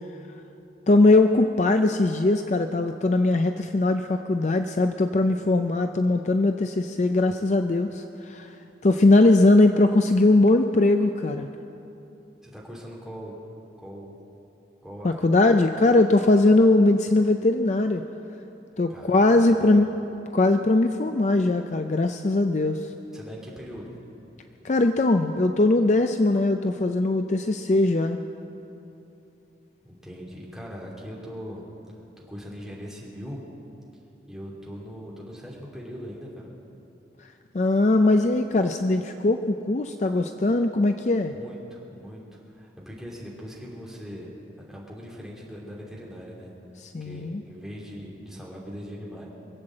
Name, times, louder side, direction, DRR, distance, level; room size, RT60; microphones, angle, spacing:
voice 1, 0.9-8.6 8.8-11.5 15.0-18.0 18.8-19.9 20.3-22.9 24.6-28.2 37.2-37.3 37.5-41.3 46.9-47.4, left 2 dB, 40° left, 7 dB, 0.4 m, -20 dB
voice 2, 12.4-13.4 13.8-14.2 14.8-15.3 18.9-19.8 23.1-23.9 29.8-31.6 32.3-33.4 34.3-36.5 41.3-42.2 42.5-44.3 44.6-46.5 47.0-49.3, equal, ahead, -5 dB, 2.7 m, -40 dB
23.5 x 8.0 x 7.6 m, 2.9 s
head